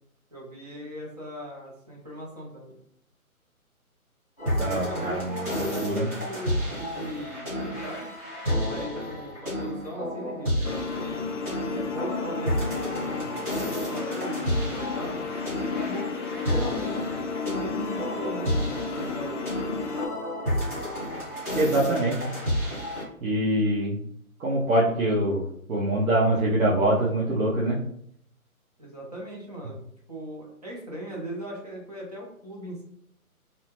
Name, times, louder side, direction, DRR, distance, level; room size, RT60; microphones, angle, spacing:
voice 1, 0.3-2.8 4.6-8.1 8.5-11.3 11.7-13.4 13.7-15.3 15.7-19.5 28.8-29.8 30.1-32.8, right 1 dB, 30° right, -3 dB, 0.6 m, -39 dB
sound 1, 4.4-23.0, equal, 5° right, 0.9 m, -31 dB
voice 2, 4.6-6.1 21.5-22.3 23.2-24.0 24.4-25.4 25.7-27.8, right 1 dB, 70° right, -6 dB, 0.8 m, -24 dB
sound 2, 10.6-20.1, left 5 dB, 55° left, 0.5 m, -33 dB
2.7 x 2.1 x 2.9 m, 0.69 s
hypercardioid pair, 155°, 44 cm